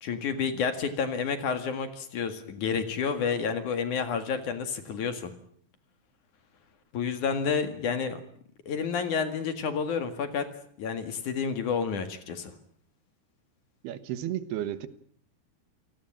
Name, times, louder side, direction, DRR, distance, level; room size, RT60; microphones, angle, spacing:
voice 1, 0.0-5.3 6.9-8.2 8.7-10.5 10.8-12.5, left 6 dB, 55° left, 9 dB, 3.1 m, -30 dB
voice 2, 13.8-14.9, right 12 dB, 80° right, 14 dB, 3.2 m, -33 dB
28.5 x 17.5 x 8.9 m, 0.63 s
omnidirectional pair, 4.6 m